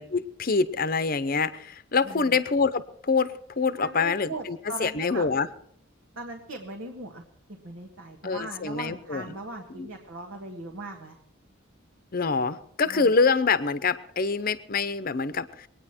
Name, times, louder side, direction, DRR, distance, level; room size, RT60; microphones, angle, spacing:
voice 1, 0.0-5.5 8.2-9.3 9.8-9.9 12.1-15.7, left 4 dB, 45° left, 13 dB, 0.7 m, -26 dB
voice 2, 2.0-2.4 3.7-5.3 6.2-7.2 7.5-11.2 12.9-13.1, right 2 dB, 75° right, 1 dB, 1.7 m, -39 dB
23.5 x 9.4 x 4.4 m, 0.66 s
head